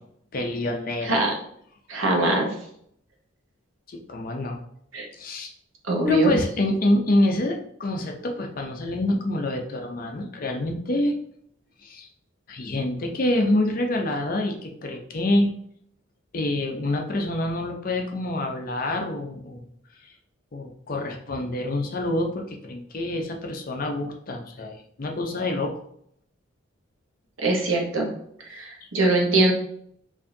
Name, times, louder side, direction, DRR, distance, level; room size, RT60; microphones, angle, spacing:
voice 1, 0.3-1.2 3.9-4.6 5.1-5.5 6.0-11.2 11.8-12.1 12.5-15.5 16.3-19.7 20.0-20.1 20.5-25.7 28.8-28.9, left 1 dB, 45° left, 3 dB, 0.5 m, -26 dB
voice 2, 1.0-1.3 1.9-2.5 4.9-5.1 5.9-6.3 27.4-28.1 28.4-29.5, right 2 dB, 75° right, 1 dB, 0.9 m, -22 dB
4.7 x 2.6 x 2.6 m, 0.68 s
head